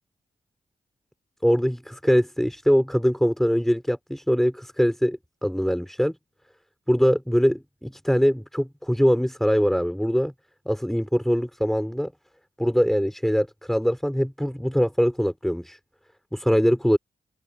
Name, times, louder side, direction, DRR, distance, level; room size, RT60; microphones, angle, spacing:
voice 1, 1.4-6.1 6.9-10.3 10.7-12.1 12.6-15.8 16.3-17.0, equal, ahead, 4.2 m, -22 dB
cardioid pair, 50°, 16 cm